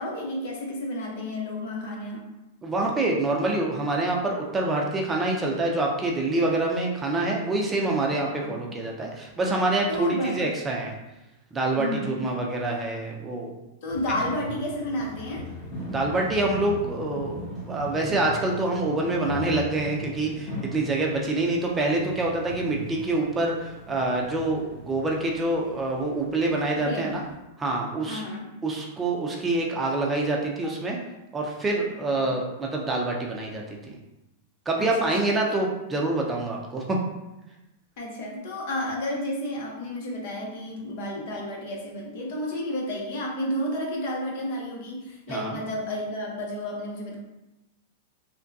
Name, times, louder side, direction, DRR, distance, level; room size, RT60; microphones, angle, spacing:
voice 1, 0.0-2.2 8.3-8.8 9.9-10.4 11.8-12.3 13.8-15.5 26.8-27.1 28.1-28.5 32.2-32.3 34.8-35.6 38.0-47.2, left 1 dB, 60° left, -1 dB, 0.8 m, -32 dB
voice 2, 2.6-10.9 11.5-13.5 15.9-27.2 27.6-28.2 28.6-31.0 31.3-34.0 34.7-37.0 45.3-45.5, right 2 dB, 15° right, -1 dB, 0.5 m, -26 dB
sound 1, 13.9-27.4, equal, 25° left, 1.3 m, -39 dB
3.4 x 2.2 x 2.7 m, 0.96 s
hypercardioid pair, 115°, 0 cm